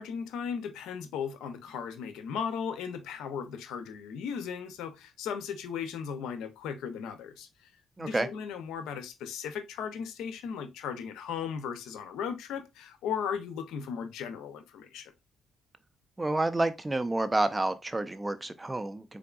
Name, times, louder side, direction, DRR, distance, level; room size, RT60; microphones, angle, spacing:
voice 1, 0.0-7.5 8.0-15.1, left 7 dB, 90° left, 0.6 m, -36 dB
voice 2, 8.0-8.3 16.2-19.2, right 2 dB, 15° right, 0.5 m, -29 dB
3.8 x 3.5 x 2.3 m
cardioid pair, 90°, 0 cm